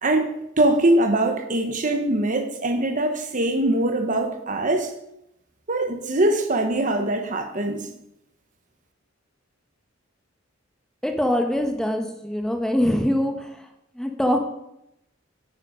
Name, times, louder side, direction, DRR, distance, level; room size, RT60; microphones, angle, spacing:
voice 1, 0.0-4.9 5.7-7.9, right 1 dB, 40° right, 6 dB, 1.3 m, -22 dB
voice 2, 11.0-13.5 14.0-14.4, equal, 5° left, 4 dB, 1.2 m, -23 dB
10.5 x 9.6 x 5.1 m, 0.81 s
head